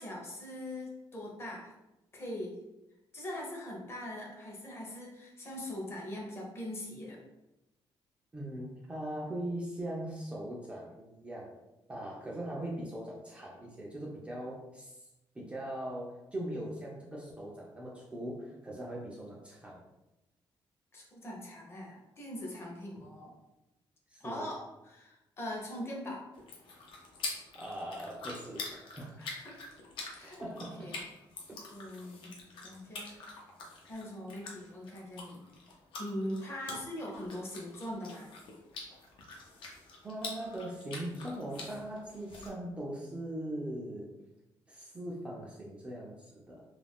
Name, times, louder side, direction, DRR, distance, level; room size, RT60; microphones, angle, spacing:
voice 1, 0.0-1.7 2.1-2.6 3.1-7.2 20.9-23.3 24.2-26.3 29.2-29.6 30.1-30.4 30.8-31.0 31.7-32.3 32.6-33.1 33.9-35.4 36.0-38.3, left 1 dB, 30° left, -2 dB, 0.6 m, -41 dB
voice 2, 8.3-11.6 11.9-15.1 15.3-19.8 23.0-23.1 24.1-24.5 27.5-29.1 30.4-30.9 31.5-31.6 33.0-33.3 36.7-36.8 40.0-44.1 44.7-46.6, right 1 dB, 15° right, -4 dB, 0.4 m, -40 dB
sound 1, 26.3-42.5, left 3 dB, 75° left, 0.6 m, -46 dB
2.4 x 2.2 x 3.4 m, 0.96 s
cardioid pair, 175°, 9 cm